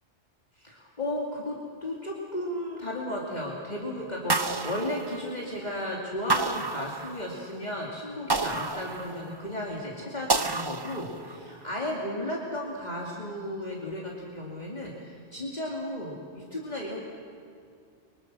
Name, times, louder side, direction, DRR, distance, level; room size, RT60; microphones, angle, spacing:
voice 1, 0.6-1.6 1.8-17.0, left 1 dB, 35° left, -3 dB, 2.9 m, -34 dB
sound 1, 4.3-5.6 6.3-7.5 8.3-9.5 10.3-11.5, right 3 dB, 25° right, 0.8 m, -30 dB
29.0 x 25.0 x 6.2 m, 2.3 s
omnidirectional pair, 1.2 m